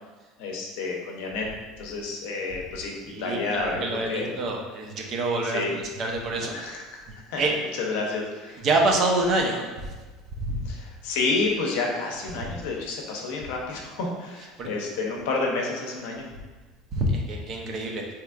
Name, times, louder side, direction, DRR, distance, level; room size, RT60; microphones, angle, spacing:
voice 1, 0.4-1.5 1.8-4.3 5.4-5.7 6.4-7.4 7.7-8.7 10.6-16.3, left 3 dB, 75° left, 0 dB, 0.6 m, -30 dB
voice 2, 3.1-5.6 6.0-6.5 7.4-7.5 8.6-9.9 10.4-10.6 14.6-14.7 16.9-18.0, right 2 dB, 50° right, 1 dB, 0.6 m, -26 dB
3.3 x 2.9 x 2.3 m, 1.3 s
supercardioid pair, 95°, 0 cm